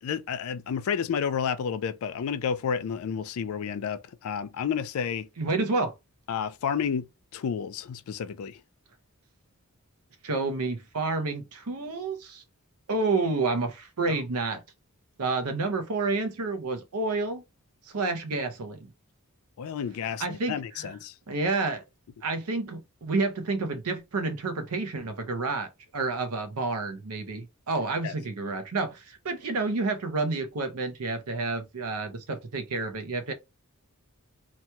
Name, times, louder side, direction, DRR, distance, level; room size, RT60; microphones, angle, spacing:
voice 1, 0.0-5.3 6.3-7.1 7.3-8.6 14.1-14.2 19.6-21.1 28.0-28.1, left 7 dB, 70° left, 0.3 m, -31 dB
voice 2, 5.4-5.9 10.2-12.4 12.9-14.6 15.2-17.4 17.9-18.9 20.2-20.9 21.3-21.8 22.2-33.3, right 3 dB, 75° right, 0.6 m, -29 dB
2.9 x 2.2 x 2.8 m
head